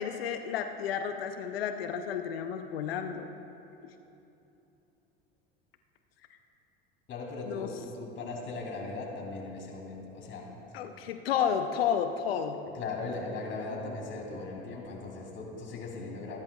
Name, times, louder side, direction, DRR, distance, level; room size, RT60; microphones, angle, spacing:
voice 1, 0.0-3.3 3.8-3.9 7.5-7.7 10.7-12.6, left 8 dB, 80° left, 7 dB, 0.7 m, -31 dB
voice 2, 7.1-10.5 12.7-16.4, left 3 dB, 40° left, -1 dB, 2.9 m, -38 dB
19.5 x 10.5 x 2.3 m, 2.8 s
hypercardioid pair, 80°, 30 cm